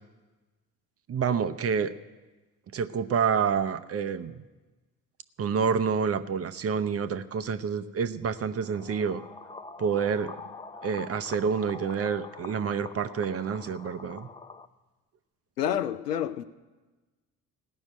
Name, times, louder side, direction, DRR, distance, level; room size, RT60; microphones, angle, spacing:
voice 1, 1.1-1.9 2.7-4.4 5.4-9.2 9.8-10.3 10.8-14.3, right 6 dB, 30° right, 12 dB, 0.7 m, -28 dB
sound 1, 8.6-14.7, left 4 dB, 10° left, 0.5 m, -44 dB
voice 2, 15.6-16.4, left 10 dB, 85° left, 12 dB, 0.6 m, -28 dB
17.0 x 6.2 x 9.0 m, 1.2 s
figure-of-eight pair, 50°, 46 cm